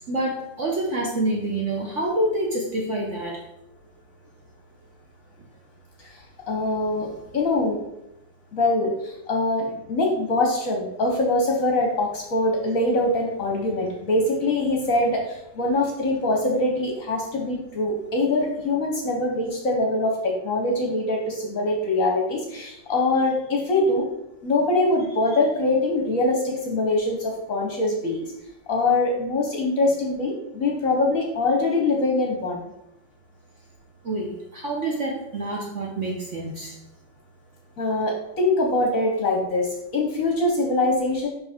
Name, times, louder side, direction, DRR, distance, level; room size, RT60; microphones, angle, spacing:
voice 1, 0.1-3.4 34.0-36.8, right 1 dB, 50° right, -2 dB, 1.0 m, -27 dB
voice 2, 6.5-7.8 8.5-24.1 24.4-28.3 28.7-32.7 37.8-41.3, left 2 dB, 55° left, 0 dB, 1.1 m, -23 dB
5.4 x 5.2 x 3.5 m, 0.85 s
omnidirectional pair, 2.1 m